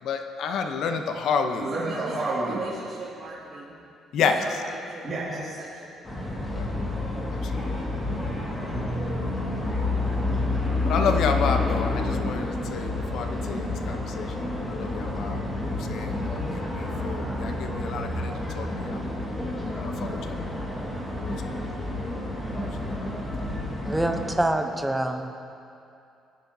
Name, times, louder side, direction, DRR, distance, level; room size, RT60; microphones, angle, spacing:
voice 1, 0.0-1.7 4.1-4.6 6.5-6.7 7.3-7.8 9.6-9.8 10.8-19.0 19.8-20.5 21.1-21.6 22.6-23.0, left 5 dB, 65° left, 6 dB, 0.7 m, -30 dB
voice 2, 1.6-3.7 4.2-4.5 4.8-5.9, right 2 dB, 35° right, -9 dB, 2.0 m, -32 dB
sound 1, 6.0-24.3, left 2 dB, 20° left, 1.8 m, -29 dB
voice 3, 23.8-25.4, right 1 dB, 5° right, 5 dB, 0.7 m, -26 dB
18.5 x 10.0 x 2.7 m, 2.6 s
cardioid pair, 130°, 0 cm